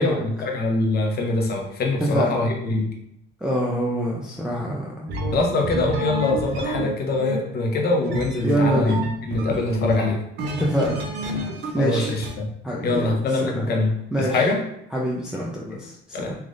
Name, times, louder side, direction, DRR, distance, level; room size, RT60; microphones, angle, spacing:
voice 1, 0.0-2.8 5.3-10.2 11.8-12.5 12.8-14.6 15.7-15.8 16.1-16.3, left 2 dB, 50° left, 0 dB, 0.8 m, -23 dB
voice 2, 2.0-2.4 3.4-5.1 8.4-9.1 10.6-11.1 11.7-12.2 12.6-13.1 13.4-13.6 14.1-14.5 14.9-16.4, equal, 5° right, -5 dB, 0.5 m, -25 dB
sound 1, 5.1-12.3, right 1 dB, 55° right, 0.6 m, -29 dB
3.3 x 2.5 x 2.5 m, 0.76 s
cardioid pair, 105°, 21 cm